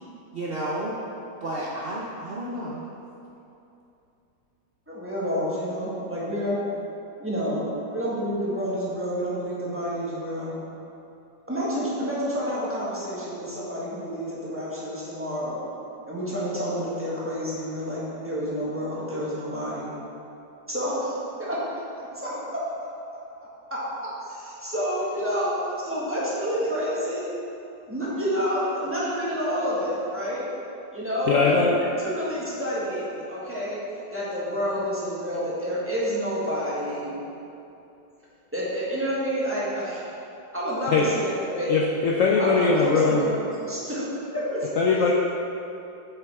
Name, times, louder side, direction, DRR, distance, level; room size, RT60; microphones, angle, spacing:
voice 1, 0.3-1.0 1.4-2.9, right 1 dB, 80° right, -5 dB, 0.5 m, -31 dB
voice 2, 4.9-6.6 7.2-10.6 11.5-15.6 16.1-19.9 20.7-21.6 22.0-22.6 23.7-23.8 24.3-25.5 25.8-27.3 27.9-30.4 30.9-33.8 34.1-37.2 38.5-40.1 40.5-41.8 42.4-45.0, equal, 10° right, -8 dB, 1.3 m, -29 dB
voice 3, 31.3-31.8 40.9-41.1 41.7-43.3 44.8-45.1, left 4 dB, 90° left, -1 dB, 0.7 m, -21 dB
8.3 x 5.8 x 3.5 m, 2.8 s
omnidirectional pair, 2.0 m